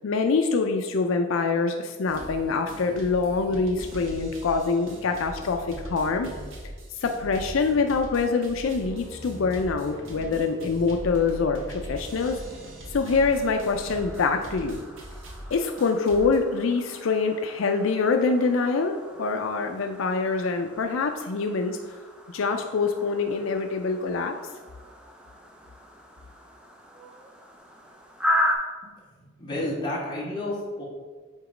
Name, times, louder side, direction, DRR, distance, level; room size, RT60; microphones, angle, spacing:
voice 1, 0.0-6.3 7.0-12.4 12.9-14.8 15.5-21.8 22.3-24.4, left 4 dB, 75° left, 5 dB, 0.4 m, -25 dB
sound 1, 2.1-2.4 2.7-16.4, equal, 75° right, 1.2 m, -40 dB
sound 2, 13.0-28.5, left 1 dB, 5° right, 0.6 m, -36 dB
voice 2, 29.2-30.8, left 1 dB, 25° left, -5 dB, 1.6 m, -31 dB
8.1 x 3.0 x 4.9 m, 1.4 s
head